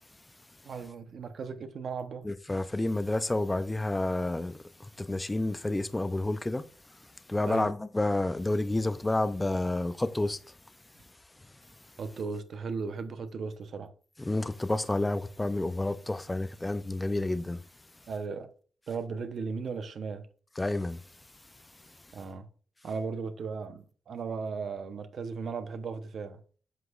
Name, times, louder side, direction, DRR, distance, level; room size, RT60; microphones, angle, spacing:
voice 1, 0.6-2.3 7.5-7.7 12.0-13.9 18.1-18.5 18.9-20.3 22.1-22.5 22.8-26.4, right 5 dB, 50° right, 0.8 m, -36 dB
voice 2, 2.2-6.6 7.0-10.5 14.2-17.6 20.6-21.0, left 2 dB, 10° left, 0.3 m, -30 dB
8.1 x 7.8 x 2.4 m
wide cardioid pair, 170°, 0 cm